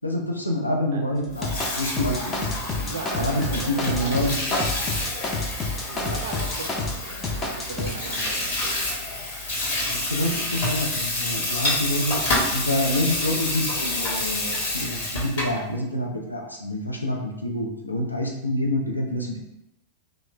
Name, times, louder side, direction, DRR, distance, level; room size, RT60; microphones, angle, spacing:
voice 1, 0.0-4.6 9.9-12.2 12.5-19.4, left 1 dB, 85° left, 0 dB, 0.5 m, -27 dB
Water tap faucet / Sink (filling or washing), 1.3-15.6, left 2 dB, 50° left, 0.8 m, -28 dB
sound 1, 1.4-7.0 7.2-7.9, left 2 dB, 20° left, 0.5 m, -29 dB
voice 2, 2.7-4.5 5.8-8.8 11.2-11.3, right 4 dB, 65° right, 3 dB, 0.4 m, -37 dB
3.0 x 2.1 x 3.3 m, 0.88 s
figure-of-eight pair, 90°, 0 cm